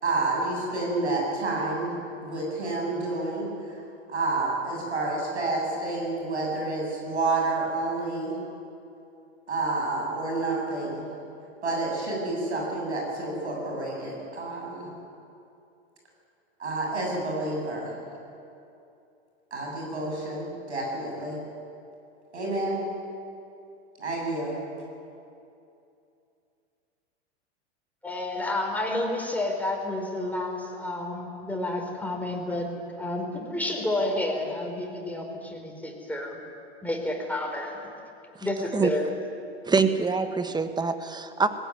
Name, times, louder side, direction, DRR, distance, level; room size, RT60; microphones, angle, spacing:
voice 1, 0.0-3.8 4.1-8.4 9.5-11.1 11.6-14.9 16.6-18.0 19.5-21.4 22.3-22.8 24.0-24.6, right 2 dB, 90° right, -1 dB, 7.9 m, -29 dB
voice 2, 28.0-32.7 33.0-36.4 36.8-37.8 38.4-39.1, left 1 dB, 5° left, 1 dB, 4.4 m, -30 dB
voice 3, 39.6-41.5, right 4 dB, 10° right, 9 dB, 1.5 m, -25 dB
20.5 x 17.0 x 9.6 m, 2.6 s
hypercardioid pair, 100°, 33 cm